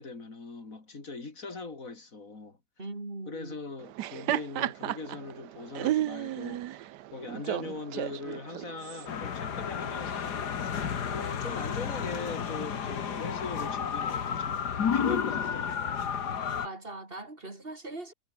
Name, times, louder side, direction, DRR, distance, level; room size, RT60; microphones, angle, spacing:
voice 1, 0.0-2.6 3.3-6.8 7.1-10.8 11.1-14.7 14.9-16.0, left 3 dB, 50° left, 4.1 m, -41 dB
voice 2, 2.8-3.6 16.6-18.1, right 2 dB, 30° right, 3.9 m, -40 dB
Laughter, 3.8-9.1, right 13 dB, 75° right, 1.3 m, -33 dB
sound 1, 9.1-16.7, left 7 dB, 70° left, 2.2 m, -31 dB
omnidirectional pair, 1.8 m